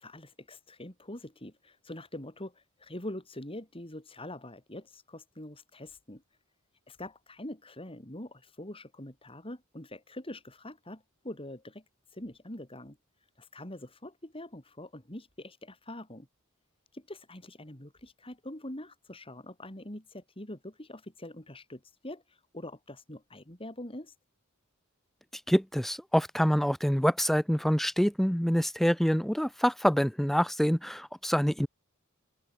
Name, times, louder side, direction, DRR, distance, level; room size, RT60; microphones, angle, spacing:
voice 1, 0.0-6.2 6.9-11.8 12.1-13.0 13.4-16.3 16.9-22.2 22.5-24.1, left 1 dB, 25° left, 5.0 m, -44 dB
voice 2, 25.5-31.7, equal, ahead, 0.5 m, -26 dB
open air
head